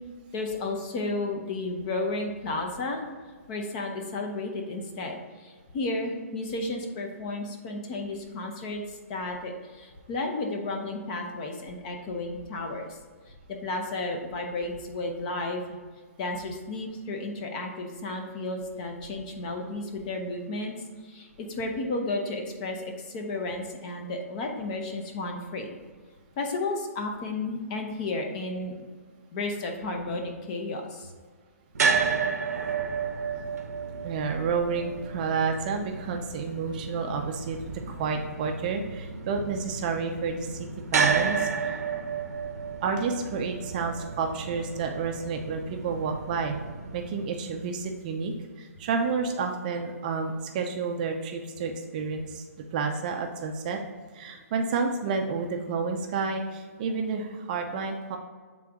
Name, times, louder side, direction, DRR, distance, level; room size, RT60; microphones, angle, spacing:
voice 1, 0.3-3.0 3.5-13.0 13.3-15.6 16.2-20.7 21.0-25.7 26.4-28.7 29.3-31.1, left 2 dB, 30° left, 3 dB, 0.8 m, -33 dB
sound 1, 31.7-47.9, right 5 dB, 85° right, 0.7 m, -32 dB
voice 2, 34.0-41.5 42.8-46.6 46.9-52.4 52.7-53.8 54.1-58.2, right 5 dB, 30° right, 3 dB, 0.5 m, -30 dB
7.5 x 3.8 x 3.6 m, 1.5 s
hypercardioid pair, 160°, 8 cm